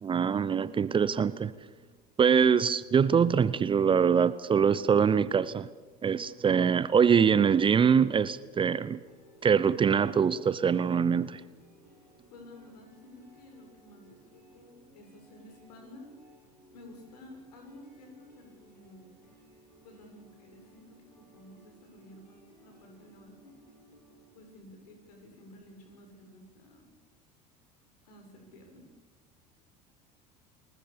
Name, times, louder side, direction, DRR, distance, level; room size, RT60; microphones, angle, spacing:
voice 1, 0.0-1.5 2.2-5.7 6.0-9.0 9.4-11.4, right 7 dB, 25° right, 17 dB, 0.8 m, -24 dB
sound 1, 9.0-24.3, right 1 dB, 85° left, 7.1 m, -59 dB
voice 2, 12.3-16.1 16.7-19.1 19.8-23.6 24.3-26.9 28.0-28.9, left 1 dB, 65° left, 4 dB, 6.9 m, -52 dB
29.5 x 20.5 x 7.0 m, 1.3 s
figure-of-eight pair, 70°, 21 cm